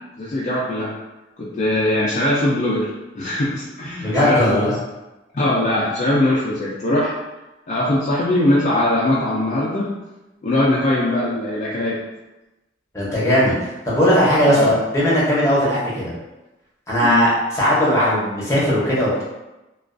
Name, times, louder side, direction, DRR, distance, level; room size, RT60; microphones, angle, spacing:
voice 1, 0.2-1.0 1.4-2.9 3.1-4.7 5.3-7.2 7.7-9.9 10.4-12.0 14.5-14.7 17.0-17.2, left 1 dB, 40° left, -7 dB, 0.3 m, -21 dB
voice 2, 4.0-4.8 12.9-13.5 13.8-16.1 16.9-19.2, equal, 15° left, -8 dB, 0.7 m, -18 dB
2.3 x 2.3 x 2.4 m, 1.0 s
head